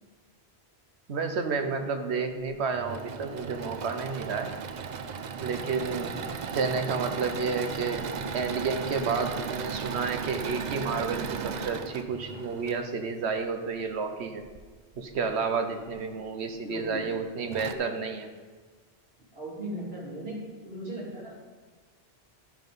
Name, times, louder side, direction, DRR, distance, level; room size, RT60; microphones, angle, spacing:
voice 1, 1.1-4.5 5.4-6.2 6.5-8.0 8.3-14.4 15.0-18.3, right 5 dB, 85° right, 7 dB, 1.2 m, -31 dB
Engine / Mechanisms, 2.5-12.8 14.4-15.2 15.8-15.9 16.2-16.3 17.1-17.2 17.5-17.7, right 6 dB, 50° right, 0.6 m, -36 dB
voice 2, 16.4-17.0 17.6-18.1 19.3-21.3, right 1 dB, 70° right, -7 dB, 3.8 m, -38 dB
12.0 x 5.8 x 5.3 m, 1.4 s
omnidirectional pair, 1.1 m